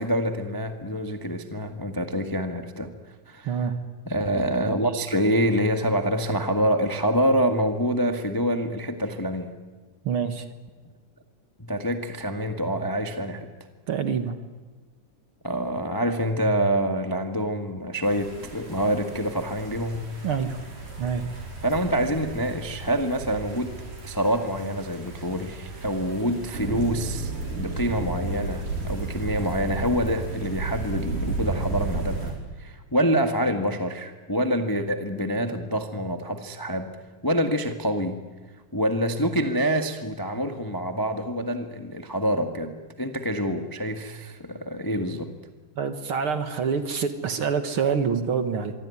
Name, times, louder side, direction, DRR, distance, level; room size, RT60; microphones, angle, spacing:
voice 1, 0.0-2.9 3.3-3.5 4.0-9.5 11.6-13.5 15.4-20.1 21.6-23.8 24.0-37.0 37.2-38.2 38.7-45.3, equal, 20° left, 6 dB, 0.5 m, -26 dB
voice 2, 10.0-10.5 13.9-14.4 20.2-20.6 21.0-21.2 45.8-48.7, right 6 dB, 50° right, 9 dB, 1.9 m, -26 dB
sound 1, 18.0-32.3, right 3 dB, 80° right, 7.0 m, -34 dB
25.0 x 24.0 x 9.8 m, 1.3 s
omnidirectional pair, 3.7 m